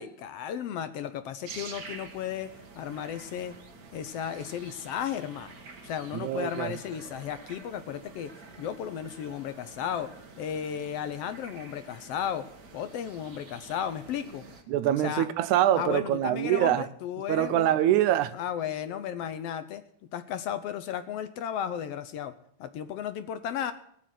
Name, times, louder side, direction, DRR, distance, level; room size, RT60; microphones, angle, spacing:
voice 1, 0.0-3.5 3.9-5.5 5.8-8.3 8.6-10.1 10.4-12.4 12.7-14.4 15.0-15.2 15.7-17.7 18.3-19.8 20.1-22.3 22.6-23.7, left 9 dB, 70° left, 1.6 m, -34 dB
sound 1, 1.4-14.6, right 4 dB, 40° right, 1.6 m, -48 dB
voice 2, 6.1-6.7 14.7-16.9 17.3-18.3, right 12 dB, 85° right, 2.2 m, -24 dB
19.0 x 6.5 x 9.2 m
omnidirectional pair, 3.4 m